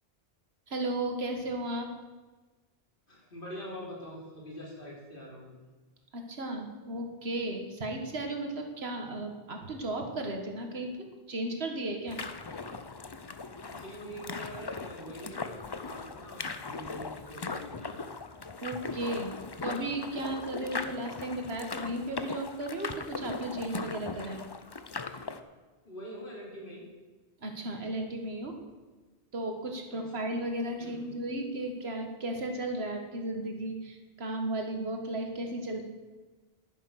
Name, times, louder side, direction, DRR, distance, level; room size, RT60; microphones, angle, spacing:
voice 1, 0.7-1.9 6.1-12.2 18.6-19.3 19.6-24.4 27.4-28.6 29.3-35.8, right 1 dB, 75° right, 4 dB, 1.8 m, -35 dB
voice 2, 3.1-5.6 13.6-18.0 25.8-26.9 29.9-30.0 30.8-31.1, equal, 55° left, -4 dB, 3.6 m, -44 dB
sound 1, 12.1-25.4, left 4 dB, 30° left, 0.5 m, -39 dB
11.0 x 9.6 x 6.5 m, 1.3 s
omnidirectional pair, 1.1 m